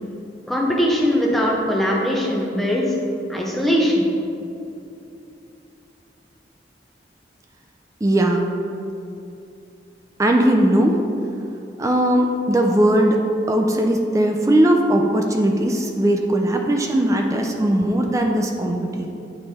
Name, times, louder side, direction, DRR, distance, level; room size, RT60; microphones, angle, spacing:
voice 1, 0.5-2.9 3.3-4.1, equal, ahead, -3 dB, 0.8 m, -20 dB
voice 2, 8.0-8.5 10.2-11.0 11.8-13.2 13.5-19.1, right 1 dB, 20° right, 2 dB, 0.4 m, -19 dB
9.0 x 3.3 x 4.2 m, 2.7 s
head